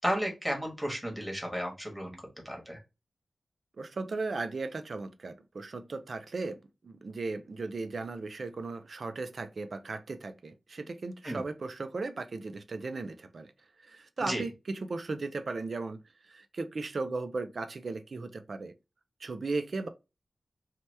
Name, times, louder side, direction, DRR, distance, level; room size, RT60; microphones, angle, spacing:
voice 1, 0.0-2.2 2.4-2.8 11.2-11.4 14.2-14.4, equal, 5° right, 1.2 m, -33 dB
voice 2, 3.8-13.5 13.8-18.7 19.2-19.9, right 3 dB, 60° right, 0.4 m, -36 dB
2.8 x 2.2 x 3.2 m
wide cardioid pair, 95°, 0 cm